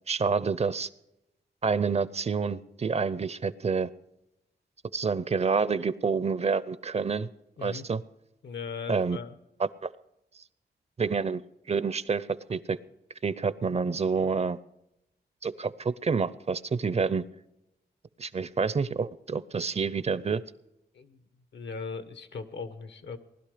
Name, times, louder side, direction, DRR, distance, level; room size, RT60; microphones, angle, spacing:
voice 1, 0.1-0.9 1.6-3.9 4.9-7.3 7.6-8.0 8.9-9.2 9.6-9.9 11.0-11.4 11.7-12.8 13.2-14.6 15.4-17.2 18.2-20.4, right 5 dB, 35° right, 16 dB, 0.5 m, -28 dB
voice 2, 8.4-9.3 20.9-21.2 21.5-23.2, left 5 dB, 80° left, 11 dB, 1.2 m, -38 dB
19.5 x 12.0 x 5.0 m, 0.89 s
wide cardioid pair, 140°, 18 cm